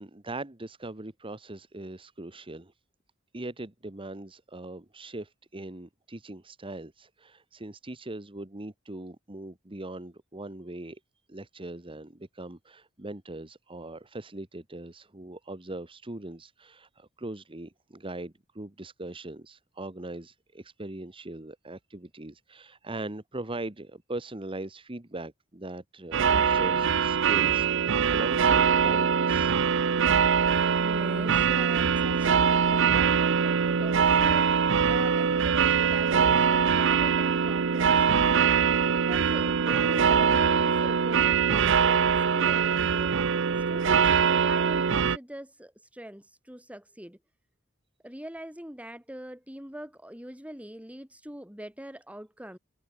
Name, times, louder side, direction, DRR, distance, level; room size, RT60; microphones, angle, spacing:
voice 1, 0.0-2.7 3.3-11.0 11.3-29.6, right 2 dB, 25° right, 1.4 m, -40 dB
sound 1, 26.1-45.2, right 6 dB, 65° right, 0.6 m, -23 dB
voice 2, 30.7-43.2 43.6-47.2 48.0-52.6, equal, 5° right, 4.3 m, -43 dB
head